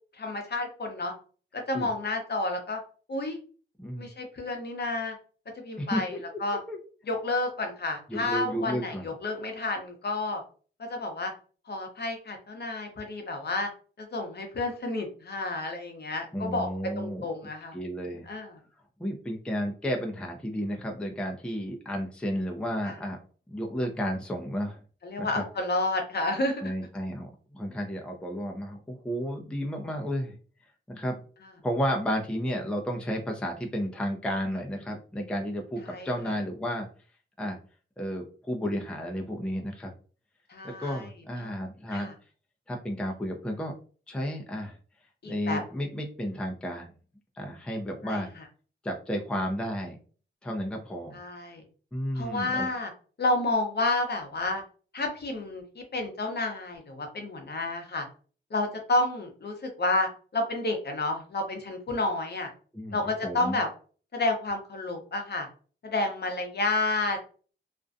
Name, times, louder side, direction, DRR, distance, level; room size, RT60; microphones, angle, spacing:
voice 1, 0.1-1.1 1.5-2.8 3.1-3.4 4.0-5.2 5.6-6.6 7.1-10.4 10.8-11.3 11.7-13.7 14.0-17.8 18.3-18.6 22.8-23.0 25.0-26.6 35.8-36.1 40.5-41.1 41.4-41.5 41.9-42.1 45.2-45.6 48.0-48.4 51.1-51.6 52.1-52.9 53.2-54.6 54.9-58.1 58.5-62.5 62.9-63.7 64.1-65.5 65.8-67.2, left 2 dB, 50° left, 4 dB, 0.7 m, -30 dB
voice 2, 5.8-6.2 6.7-6.8 8.1-9.0 16.3-17.3 17.7-18.3 19.0-23.2 23.5-24.8 25.2-25.4 26.6-30.4 30.9-31.2 31.6-36.9 37.4-37.6 38.0-39.9 40.8-42.1 42.7-43.7 44.1-44.8 45.2-46.9 47.4-48.3 48.8-50.0 50.4-51.2 51.9-52.7 62.7-63.0 63.2-63.6, equal, 5° left, 1 dB, 0.5 m, -32 dB
2.5 x 2.2 x 2.5 m, 0.40 s
cardioid pair, 70°, 21 cm